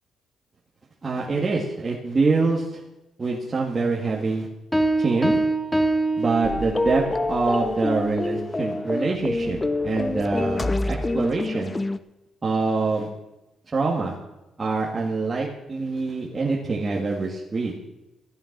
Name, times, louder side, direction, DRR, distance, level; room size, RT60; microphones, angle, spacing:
voice 1, 1.0-2.8 3.2-4.5 5.0-5.3 6.2-9.6 9.8-11.7 12.4-13.1 13.7-14.1 14.6-17.8, right 3 dB, 30° right, -4 dB, 1.9 m, -25 dB
Piano, 4.7-7.1, right 2 dB, 5° left, 1.8 m, -24 dB
sound 1, 6.4-12.0, left 2 dB, 20° left, 0.6 m, -27 dB
14.5 x 9.0 x 6.0 m, 0.96 s
cardioid pair, 90°, 0 cm